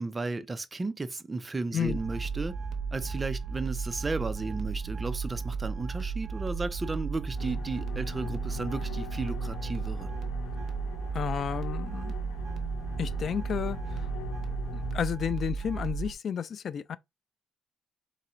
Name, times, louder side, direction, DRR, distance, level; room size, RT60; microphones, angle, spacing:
voice 1, 0.0-2.5 2.9-10.1, right 3 dB, 25° right, 0.5 m, -34 dB
sound 1, 1.8-16.1, right 5 dB, 70° right, 0.8 m, -34 dB
sound 2, 7.3-15.0, left 8 dB, 85° left, 0.8 m, -43 dB
voice 2, 11.1-12.1 13.0-14.1 14.7-17.0, left 8 dB, 55° left, 0.3 m, -32 dB
3.8 x 2.4 x 4.3 m
cardioid pair, 90°, 0 cm